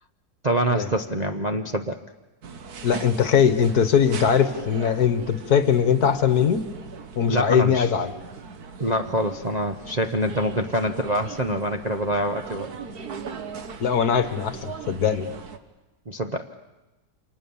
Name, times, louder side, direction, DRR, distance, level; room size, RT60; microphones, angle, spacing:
voice 1, 0.4-2.0 7.3-7.9 8.8-12.7 16.1-16.5, right 1 dB, 35° right, 5 dB, 0.7 m, -25 dB
sound 1, 2.4-15.6, right 5 dB, 60° right, 1.8 m, -39 dB
voice 2, 2.8-6.6 7.2-8.1 13.8-15.3, left 7 dB, 60° left, 11 dB, 1.7 m, -21 dB
29.0 x 26.0 x 7.1 m, 1.1 s
omnidirectional pair, 2.0 m